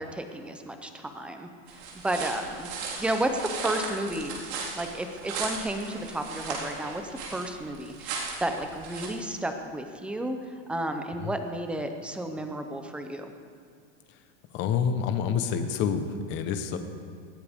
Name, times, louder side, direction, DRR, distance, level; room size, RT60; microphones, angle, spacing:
voice 1, 0.0-2.7 3.0-4.3 4.7-13.3, right 1 dB, 5° right, 6 dB, 0.5 m, -32 dB
sound 1, 1.7-9.1, right 4 dB, 60° right, 4.3 m, -36 dB
voice 2, 14.5-16.8, left 7 dB, 30° left, 8 dB, 1.0 m, -28 dB
20.0 x 16.5 x 3.6 m, 2.2 s
supercardioid pair, 165°, 36 cm